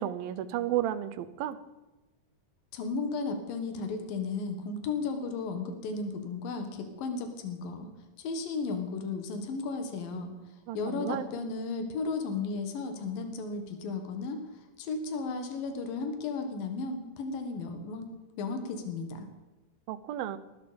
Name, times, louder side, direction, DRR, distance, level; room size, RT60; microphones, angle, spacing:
voice 1, 0.0-1.6 10.7-11.3 19.9-20.4, right 12 dB, 85° right, 14 dB, 2.6 m, -32 dB
voice 2, 2.7-7.9 8.2-10.3 10.7-14.4 14.8-18.0 18.3-19.3, left 4 dB, 80° left, 6 dB, 3.4 m, -34 dB
19.5 x 14.0 x 5.2 m, 1.1 s
omnidirectional pair, 4.0 m